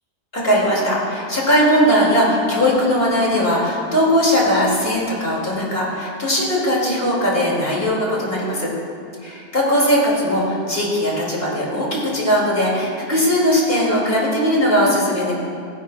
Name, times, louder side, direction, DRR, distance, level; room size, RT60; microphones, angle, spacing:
voice 1, 0.3-8.7 9.2-15.3, equal, 40° left, -5 dB, 2.7 m, -19 dB
16.0 x 10.5 x 2.4 m, 2.4 s
omnidirectional pair, 1.6 m